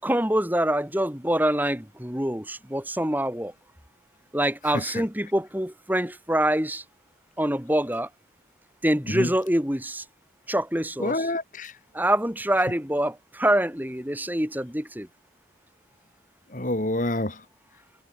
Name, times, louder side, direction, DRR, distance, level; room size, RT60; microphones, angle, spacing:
voice 1, 0.0-3.5 4.3-6.8 7.4-8.1 8.8-10.0 10.5-11.3 11.9-15.1, right 1 dB, 10° right, 4.4 m, -25 dB
voice 2, 4.7-5.0 9.1-9.3 11.0-11.7 16.5-17.4, left 1 dB, 45° left, 2.4 m, -27 dB
head